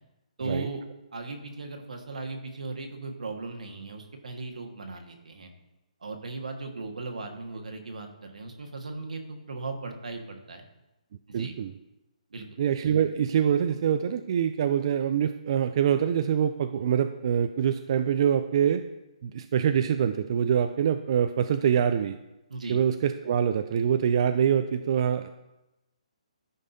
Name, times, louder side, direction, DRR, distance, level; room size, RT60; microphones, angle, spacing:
voice 1, 0.4-0.8 1.1-5.5 6.0-10.6 11.3-11.6 12.3-12.6 22.5-22.8, right 3 dB, 80° right, 4 dB, 1.4 m, -37 dB
voice 2, 11.3-11.7 12.6-18.8 19.2-22.2 22.7-25.3, right 8 dB, 45° right, 8 dB, 0.4 m, -25 dB
13.5 x 5.4 x 2.7 m, 0.97 s
hypercardioid pair, 155°, 4 cm